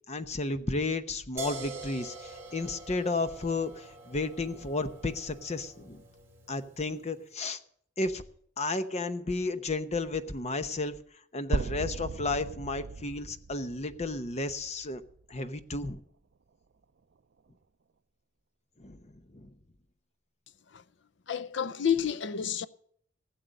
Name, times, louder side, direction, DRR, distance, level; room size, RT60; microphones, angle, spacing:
voice 1, 0.1-6.0 6.5-7.6 8.0-8.2 8.6-10.9 11.3-15.0 15.3-16.0 18.8-19.0 19.3-19.5, left 3 dB, 35° left, 0.8 m, -33 dB
sound 1, 1.4-7.2, right 3 dB, 15° right, 2.9 m, -46 dB
sound 2, 11.5-15.5, right 4 dB, 60° right, 0.5 m, -37 dB
voice 2, 21.3-22.7, left 8 dB, 65° left, 0.6 m, -29 dB
16.5 x 7.7 x 6.6 m
head